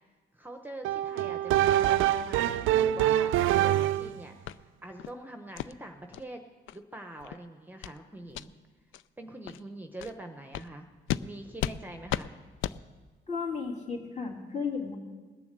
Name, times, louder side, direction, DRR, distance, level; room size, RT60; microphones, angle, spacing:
voice 1, 0.3-6.4 6.7-8.5 9.2-12.4, right 1 dB, 10° right, 5 dB, 0.9 m, -44 dB
sound 1, 0.8-4.2, right 12 dB, 85° right, 0.4 m, -25 dB
sound 2, 4.5-4.6 5.0-5.1 5.6-5.7 6.1-6.2 6.7-6.8 7.2-7.4 7.8-8.0 8.3-8.5 8.9-9.0 9.5-9.6 10.0-10.1 10.5-10.7 11.1-11.2 11.6-11.8 12.1-12.3 12.6-12.8, left 12 dB, 80° left, 0.4 m, -34 dB
voice 2, 13.3-15.0, left 5 dB, 35° left, 0 dB, 3.1 m, -34 dB
20.0 x 6.9 x 6.7 m, 1.4 s
cardioid pair, 90°, 20 cm